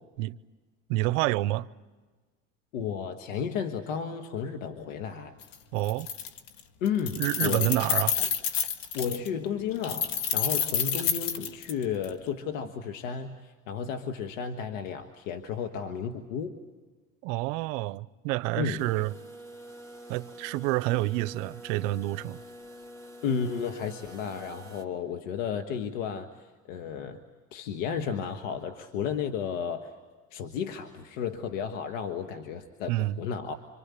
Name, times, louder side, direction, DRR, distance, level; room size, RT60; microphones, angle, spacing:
voice 1, 0.9-1.7 5.7-6.1 7.1-8.2 17.2-19.1 20.1-22.4 32.9-33.2, right 18 dB, 80° right, 0.8 m, -28 dB
voice 2, 2.7-5.3 6.8-7.7 8.2-8.3 8.9-16.5 18.6-18.8 23.2-27.2 27.5-29.9 30.3-33.5, left 7 dB, 90° left, 1.5 m, -33 dB
Keys jangling, 5.4-5.5 5.8-6.6 6.9-9.3 9.8-12.1, left 8 dB, 60° left, 1.7 m, -29 dB
sound 1, 18.8-24.8, right 1 dB, 10° left, 2.9 m, -47 dB
26.5 x 25.5 x 8.4 m
supercardioid pair, 95°, 38 cm